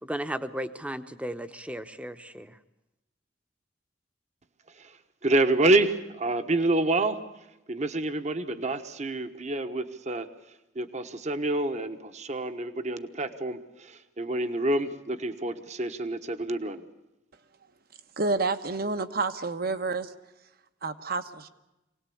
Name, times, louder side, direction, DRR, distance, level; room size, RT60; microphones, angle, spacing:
voice 1, 0.0-2.6, right 1 dB, 5° right, 10 dB, 0.9 m, -35 dB
voice 2, 5.2-7.2 7.7-10.3 10.7-16.9, right 2 dB, 40° right, 9 dB, 1.2 m, -27 dB
voice 3, 18.2-20.1 20.8-21.5, right 3 dB, 55° right, 10 dB, 1.2 m, -29 dB
24.5 x 18.0 x 8.5 m, 0.98 s
head